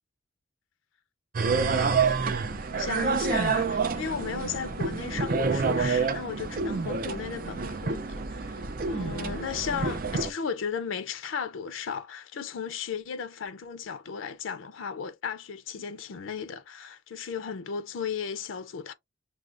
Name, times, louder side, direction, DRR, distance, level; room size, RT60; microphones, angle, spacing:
sound 1, 1.3-10.3, right 4 dB, 45° right, 0.5 m, -28 dB
voice 1, 1.4-2.1 2.7-18.9, left 6 dB, 85° left, 0.5 m, -35 dB
6.1 x 2.2 x 2.5 m
head